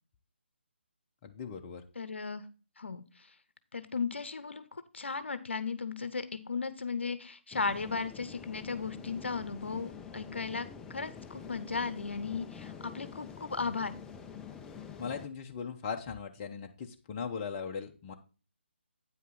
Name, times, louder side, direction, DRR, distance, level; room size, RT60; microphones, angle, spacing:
voice 1, 1.2-1.8 15.0-18.1, left 6 dB, 25° left, 3 dB, 0.9 m, -39 dB
voice 2, 2.0-2.4 2.8-3.0 3.7-13.9, left 4 dB, 70° left, 13 dB, 0.8 m, -36 dB
sound 1, 7.5-15.3, left 6 dB, 5° left, 0.4 m, -47 dB
8.8 x 5.5 x 3.8 m, 0.34 s
figure-of-eight pair, 150°, 6 cm